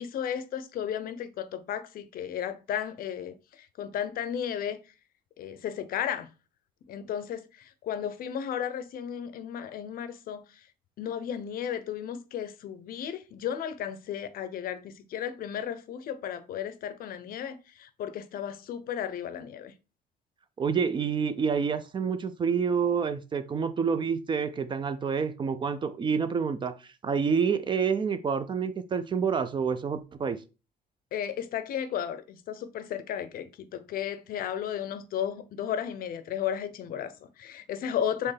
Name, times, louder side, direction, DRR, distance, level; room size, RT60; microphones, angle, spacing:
voice 1, 0.0-4.8 5.4-6.3 6.9-10.6 11.0-19.7 31.1-38.3, left 9 dB, 60° left, 0.6 m, -34 dB
voice 2, 20.6-30.4, right 6 dB, 30° right, 0.4 m, -28 dB
4.4 x 3.3 x 3.3 m
cardioid pair, 110°, 17 cm